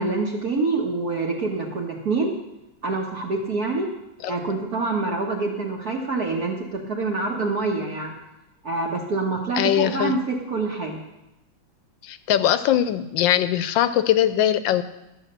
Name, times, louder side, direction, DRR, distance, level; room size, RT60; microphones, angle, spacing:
voice 1, 0.0-2.3 2.8-3.9 4.3-8.1 8.6-11.0, right 3 dB, 50° right, -2 dB, 1.6 m, -26 dB
voice 2, 9.6-10.2 12.0-14.8, left 11 dB, 75° left, 13 dB, 1.2 m, -21 dB
12.0 x 7.2 x 6.6 m, 0.92 s
omnidirectional pair, 2.2 m